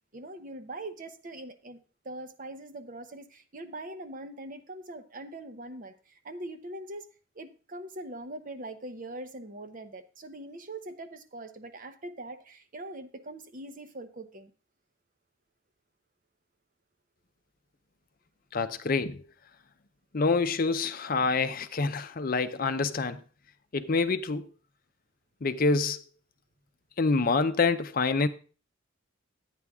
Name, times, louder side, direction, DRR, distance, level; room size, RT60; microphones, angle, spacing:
voice 1, 0.1-1.8 2.0-7.1 7.4-14.5, right 1 dB, 45° right, 0.8 m, -42 dB
voice 2, 18.5-19.2 20.1-23.2 23.7-24.5 25.4-26.0 27.0-28.3, left 4 dB, 45° left, 0.6 m, -26 dB
11.0 x 9.2 x 3.6 m
head